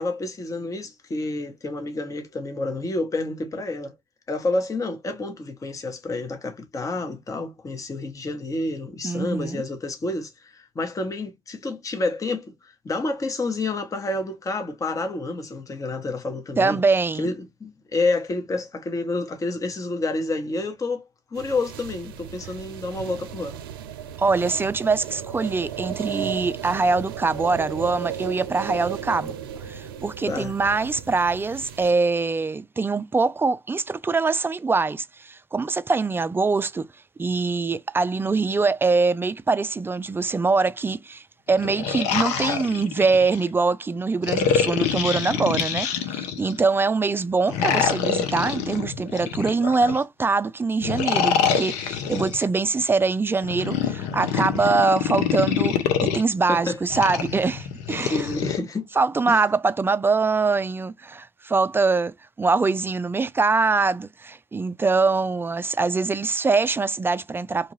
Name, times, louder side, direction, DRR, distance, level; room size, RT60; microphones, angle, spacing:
voice 1, 0.0-3.9 4.3-16.8 17.2-21.0 21.3-23.6 30.3-30.5 56.5-56.8 58.0-58.9 59.3-59.4, left 2 dB, 30° left, 0.9 m, -29 dB
voice 2, 9.0-9.6 16.6-17.3 24.2-29.4 29.6-36.9 37.2-55.8 56.0-58.3 59.0-67.7, right 4 dB, 20° right, 0.4 m, -23 dB
sound 1, 21.3-31.9, right 9 dB, 90° right, 0.4 m, -35 dB
sound 2, 41.5-43.4 44.2-46.6 47.5-50.0 50.8-52.4 53.4-56.2 56.9-58.6, left 7 dB, 75° left, 0.6 m, -25 dB
2.7 x 2.3 x 3.0 m
hypercardioid pair, 60°, 12 cm